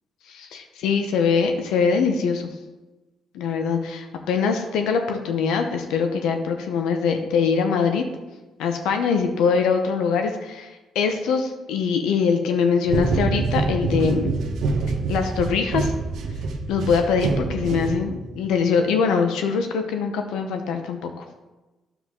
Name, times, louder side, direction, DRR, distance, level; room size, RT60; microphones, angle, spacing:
voice 1, 0.3-2.5 3.3-8.1 8.6-14.3 15.1-15.9 16.7-21.2, left 5 dB, 90° left, 6 dB, 0.8 m, -23 dB
sound 1, 12.9-18.4, right 3 dB, 75° right, 1.1 m, -26 dB
9.9 x 7.1 x 3.7 m, 1.1 s
cardioid pair, 90°, 0 cm